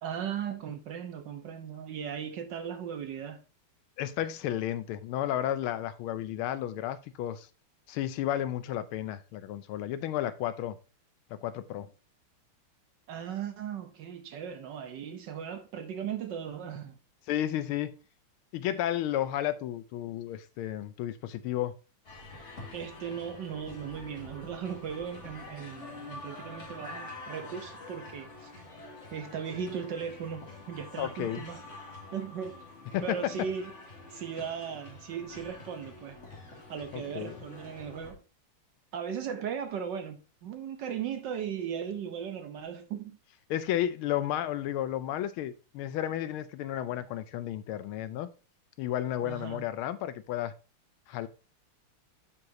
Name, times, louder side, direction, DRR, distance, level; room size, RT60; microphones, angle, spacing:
voice 1, 0.0-3.4 13.1-17.0 22.7-28.5 29.1-31.6 32.1-32.6 33.0-33.7 34.1-36.2 36.7-38.2 38.9-43.2 49.2-49.6, right 7 dB, 65° right, 1.2 m, -37 dB
voice 2, 4.0-7.5 7.9-10.8 11.3-11.9 17.3-18.0 18.5-21.7 31.0-31.4 32.9-33.3 36.9-37.3 43.5-48.3 48.8-50.5 51.1-51.3, left 12 dB, 80° left, 1.4 m, -32 dB
sound 1, 22.0-38.1, left 2 dB, 35° left, 2.1 m, -47 dB
10.5 x 4.9 x 2.7 m
omnidirectional pair, 2.4 m